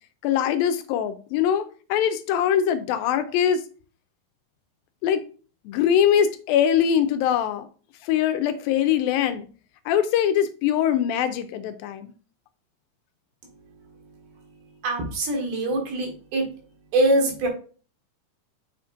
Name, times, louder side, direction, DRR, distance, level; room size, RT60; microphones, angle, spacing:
voice 1, 0.2-1.7 1.9-3.6 5.0-5.2 5.7-7.7 8.0-9.5 9.9-12.1, left 9 dB, 80° left, 2.3 m, -22 dB
voice 2, 14.8-16.4 16.9-17.5, right 2 dB, 75° right, 3.6 m, -23 dB
7.6 x 5.8 x 2.5 m
omnidirectional pair, 4.3 m